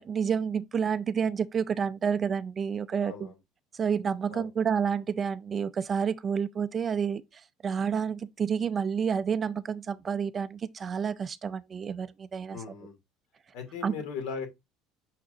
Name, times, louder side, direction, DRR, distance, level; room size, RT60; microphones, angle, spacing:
voice 1, 0.0-3.1 3.7-12.6 13.8-13.9, right 7 dB, 25° right, 0.3 m, -29 dB
voice 2, 3.0-3.4 4.3-4.5 12.5-12.9 13.5-14.5, left 5 dB, 65° left, 2.6 m, -38 dB
6.4 x 5.8 x 2.6 m
cardioid pair, 165°, 0 cm